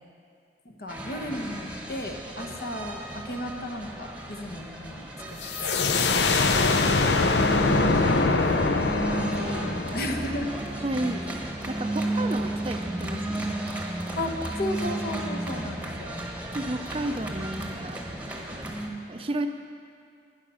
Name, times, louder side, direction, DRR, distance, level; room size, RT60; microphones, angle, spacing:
voice 1, 0.6-6.0 8.8-10.5 14.2-16.2, left 1 dB, 55° left, 3 dB, 1.1 m, -35 dB
sound 1, 0.9-18.9, right 1 dB, 10° right, 1.1 m, -33 dB
sound 2, 5.4-10.9, left 3 dB, 80° left, 0.7 m, -24 dB
voice 2, 10.8-13.5 16.5-18.0 19.1-19.5, right 1 dB, 30° right, 7 dB, 0.5 m, -32 dB
12.0 x 10.0 x 5.6 m, 2.4 s
head